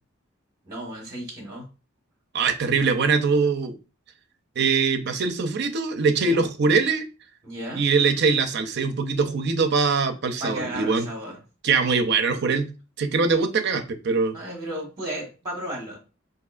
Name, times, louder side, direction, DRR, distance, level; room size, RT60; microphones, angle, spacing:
voice 1, 0.6-1.7 6.2-6.4 7.4-7.9 10.4-11.4 14.3-16.0, right 1 dB, 20° right, -1 dB, 1.2 m, -34 dB
voice 2, 2.3-3.8 4.6-7.1 7.7-11.1 11.6-12.7 13.0-14.3, right 4 dB, 55° right, 6 dB, 0.5 m, -22 dB
4.6 x 2.6 x 2.4 m, 0.32 s
head